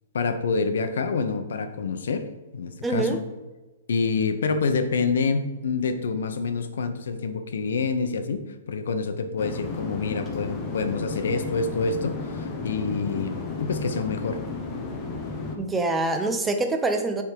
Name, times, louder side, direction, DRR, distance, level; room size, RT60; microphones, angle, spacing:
voice 1, 0.1-2.3 2.5-3.2 3.9-8.4 8.7-13.3 13.6-14.4, left 4 dB, 80° left, 9 dB, 0.8 m, -27 dB
voice 2, 2.8-3.2 15.6-17.2, right 2 dB, 10° right, 5 dB, 0.5 m, -25 dB
sound 1, 9.4-15.6, left 3 dB, 15° left, 0.8 m, -33 dB
8.4 x 3.6 x 4.6 m, 1.2 s
hypercardioid pair, 165°, 0 cm